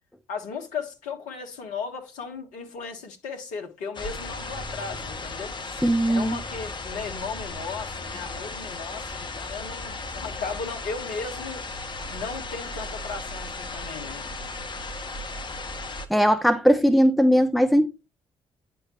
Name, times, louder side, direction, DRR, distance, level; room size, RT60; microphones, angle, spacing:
voice 1, 0.3-5.5 6.1-11.7 12.1-14.3, left 5 dB, 65° left, 1.5 m, -36 dB
sound 1, 3.9-16.1, left 3 dB, 35° left, 1.4 m, -35 dB
voice 2, 5.8-6.4 16.1-17.9, equal, ahead, 0.8 m, -19 dB
9.6 x 5.2 x 3.0 m
figure-of-eight pair, 45°, 14 cm